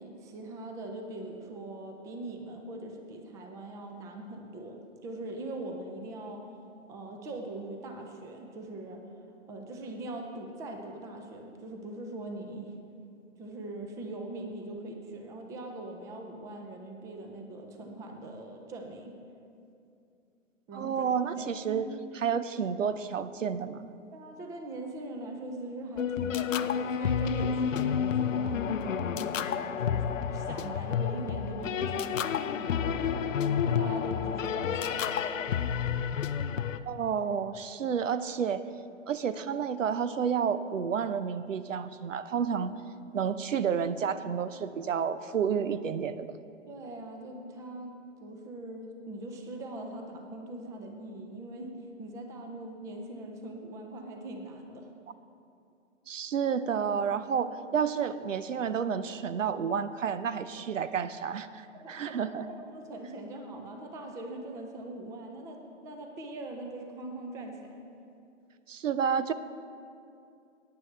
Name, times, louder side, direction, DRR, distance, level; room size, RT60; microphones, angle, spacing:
voice 1, 0.0-6.4 6.9-9.0 9.5-12.7 13.4-19.1 20.7-21.8 24.1-30.0 30.3-35.3 46.7-54.9 61.7-67.8, right 2 dB, 10° right, 3 dB, 0.5 m, -41 dB
voice 2, 20.7-21.9 22.2-23.9 36.9-38.7 39.1-42.7 43.1-46.3 56.1-62.5 68.7-69.3, right 7 dB, 85° right, 14 dB, 0.7 m, -30 dB
sound 1, 26.0-36.8, left 7 dB, 90° left, 0.6 m, -30 dB
17.5 x 9.6 x 3.3 m, 2.6 s
hypercardioid pair, 140°, 37 cm